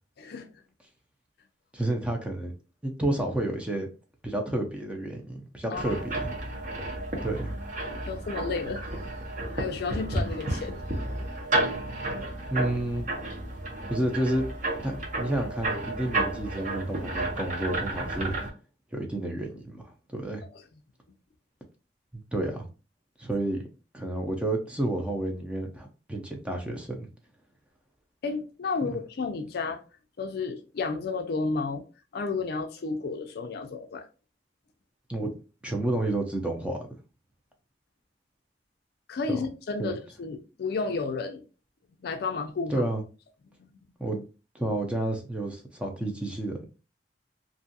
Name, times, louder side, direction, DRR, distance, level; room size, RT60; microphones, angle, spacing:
voice 1, 0.2-0.5 5.7-6.0 8.0-8.8 9.5-10.8 28.2-29.8 30.2-31.9 32.1-34.1 39.1-41.4 42.0-42.9 43.6-43.9, left 4 dB, 60° left, 0.4 m, -32 dB
voice 2, 1.7-2.5 2.8-3.9 4.2-6.3 7.2-7.5 12.5-13.1 13.9-14.5 14.8-18.5 18.9-20.4 22.3-22.7 23.2-23.7 23.9-27.1 28.8-28.9 35.1-35.3 35.6-36.8 39.3-39.4 39.8-40.0 42.7-43.0 44.0-44.2 44.5-46.7, right 1 dB, 5° right, 0.5 m, -30 dB
sound 1, 5.7-18.5, right 2 dB, 45° right, 0.8 m, -32 dB
2.6 x 2.3 x 2.6 m
head